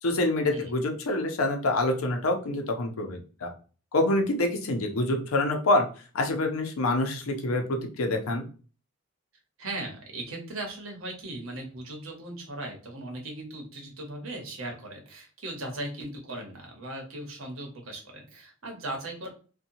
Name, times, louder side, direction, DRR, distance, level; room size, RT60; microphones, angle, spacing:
voice 1, 0.0-3.5 3.9-5.8 6.1-8.5, left 2 dB, 85° left, 3 dB, 0.6 m, -26 dB
voice 2, 9.6-19.3, right 2 dB, 75° right, 2 dB, 0.9 m, -38 dB
2.8 x 2.2 x 2.6 m, 0.37 s
head